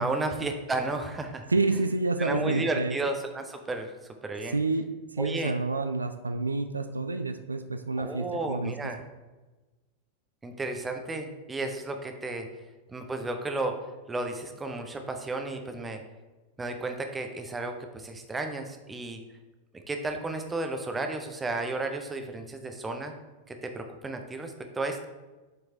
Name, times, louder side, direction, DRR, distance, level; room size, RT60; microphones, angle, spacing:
voice 1, 0.0-1.5 2.2-3.9 4.2-4.6 5.2-5.5 8.0-9.0 10.4-12.5 12.9-13.8 14.1-16.0 16.6-19.2 19.7-23.1 23.5-25.1, right 2 dB, 15° right, 5 dB, 0.7 m, -33 dB
voice 2, 1.5-3.0 4.5-8.7, right 3 dB, 80° right, 9 dB, 0.3 m, -29 dB
7.7 x 4.9 x 2.8 m, 1.2 s
figure-of-eight pair, 90°, 0 cm